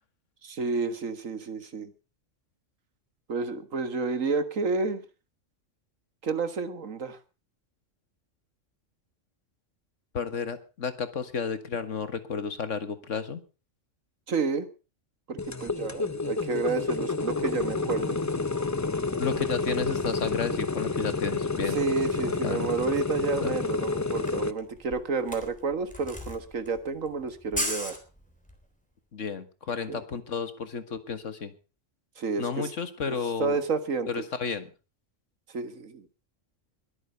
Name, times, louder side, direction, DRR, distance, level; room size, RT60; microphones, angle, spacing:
voice 1, 0.4-1.9 3.3-5.0 6.2-7.2 14.3-14.7 15.3-18.2 21.7-28.0 29.9-30.0 32.2-32.7 33.1-34.1 35.5-36.1, right 4 dB, 90° right, 11 dB, 1.9 m, -30 dB
voice 2, 10.1-13.4 19.2-21.8 22.2-22.7 23.4-23.5 29.1-31.5 32.4-33.6 34.1-34.7, left 5 dB, 70° left, 11 dB, 1.9 m, -32 dB
sound 1, 15.4-24.5, left 3 dB, 20° left, 0.5 m, -29 dB
Camera, 23.8-23.9 24.1-28.6, equal, 5° left, 3.6 m, -36 dB
21.5 x 8.8 x 5.6 m, 0.34 s
omnidirectional pair, 1.3 m